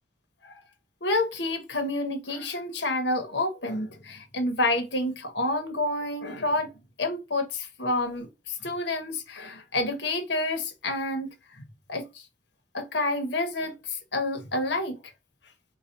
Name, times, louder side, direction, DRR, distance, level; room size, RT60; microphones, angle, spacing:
voice 1, 1.0-6.7 7.0-11.3 11.9-12.0 12.7-15.0, left 2 dB, 85° left, 1.1 m, -29 dB
4.8 x 2.3 x 2.7 m
head